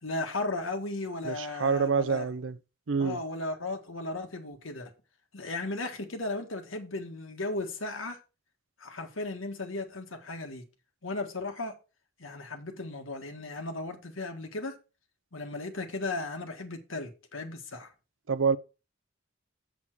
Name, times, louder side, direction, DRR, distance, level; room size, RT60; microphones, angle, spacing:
voice 1, 0.0-2.3 3.0-4.9 5.3-8.2 8.8-10.6 11.0-11.7 12.2-14.8 15.3-17.9, left 2 dB, 85° left, 1.6 m, -36 dB
voice 2, 1.2-2.6 2.9-3.2 18.3-18.6, right 5 dB, 70° right, 0.6 m, -27 dB
7.3 x 7.1 x 4.6 m
head